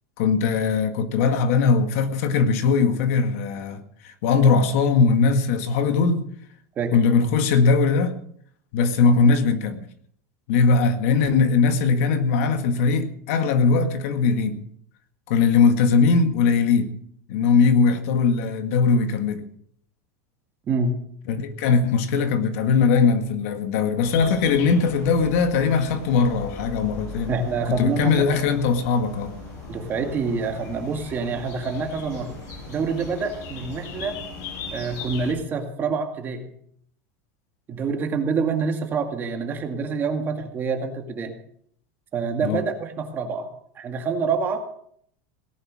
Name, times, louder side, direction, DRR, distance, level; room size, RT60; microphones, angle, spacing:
voice 1, 0.2-6.2 6.9-8.1 8.7-9.8 10.5-14.6 15.3-16.9 17.3-19.5 21.3-27.3 27.8-29.3 42.4-42.6, left 5 dB, 60° left, 8 dB, 1.9 m, -20 dB
voice 2, 20.7-21.0 27.3-28.2 29.7-32.4 32.7-34.2 34.7-36.5 37.7-41.3 42.1-43.5 43.8-44.6, right 4 dB, 25° right, 4 dB, 2.1 m, -26 dB
sound 1, 24.0-35.3, left 4 dB, 40° left, 7.5 m, -38 dB
18.0 x 11.0 x 6.4 m, 0.65 s
supercardioid pair, 165°, 9 cm